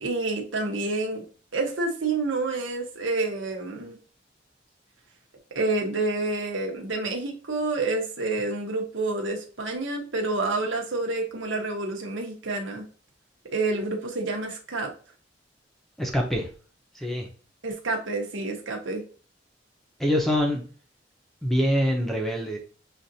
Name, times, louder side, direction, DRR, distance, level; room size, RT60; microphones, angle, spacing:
voice 1, 0.0-1.2 1.5-4.0 5.5-12.9 13.5-14.9 17.6-19.0, right 3 dB, 90° right, 1 dB, 1.0 m, -28 dB
voice 2, 16.0-16.5 16.9-17.3 20.0-20.6 21.4-22.6, equal, ahead, 1 dB, 0.7 m, -24 dB
6.3 x 2.5 x 2.7 m, 0.39 s
head